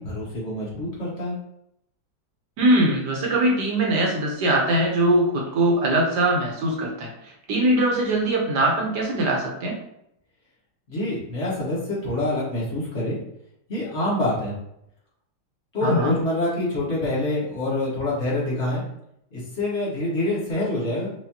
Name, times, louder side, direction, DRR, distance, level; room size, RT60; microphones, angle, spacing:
voice 1, 0.0-1.4 10.9-13.2 13.7-14.5 15.7-18.8 19.3-21.1, left 1 dB, 40° left, -6 dB, 1.4 m, -26 dB
voice 2, 2.6-9.8 15.8-16.2, right 1 dB, 65° right, -1 dB, 1.5 m, -22 dB
4.8 x 2.7 x 2.8 m, 0.77 s
omnidirectional pair, 2.0 m